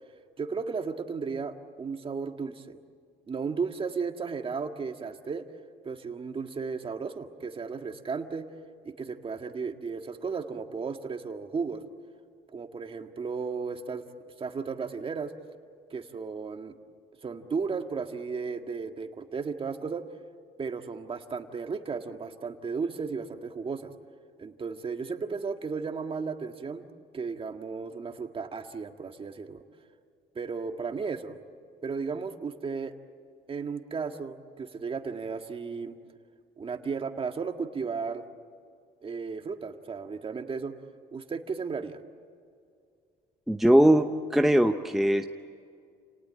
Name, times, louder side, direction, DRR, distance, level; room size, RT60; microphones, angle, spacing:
voice 1, 0.4-2.8 3.3-5.5 5.8-8.5 8.8-11.8 12.5-14.0 14.4-15.3 15.9-16.7 17.2-20.0 20.6-23.9 24.4-26.8 27.1-29.6 30.3-31.4 31.8-32.9 33.5-36.0 36.6-38.3 39.0-40.7 41.1-42.0, right 5 dB, 30° right, 6 dB, 1.8 m, -34 dB
voice 2, 43.5-45.2, right 1 dB, ahead, 5 dB, 0.8 m, -21 dB
30.0 x 19.0 x 8.9 m, 2.3 s
cardioid pair, 110°, 17 cm